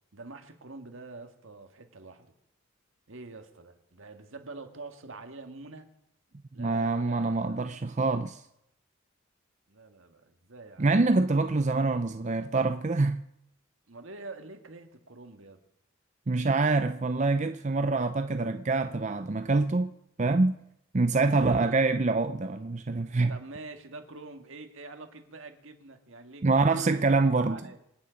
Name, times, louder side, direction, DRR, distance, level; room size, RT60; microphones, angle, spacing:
voice 1, 0.1-2.3 3.1-5.9 6.5-7.6 9.7-10.9 13.9-15.6 21.2-21.6 23.3-27.8, right 3 dB, 70° right, 1.8 m, -46 dB
voice 2, 6.6-8.4 10.8-13.2 16.3-19.9 20.2-20.6 20.9-23.3 26.4-27.6, right 3 dB, 35° right, 0.5 m, -25 dB
26.5 x 9.7 x 5.2 m
head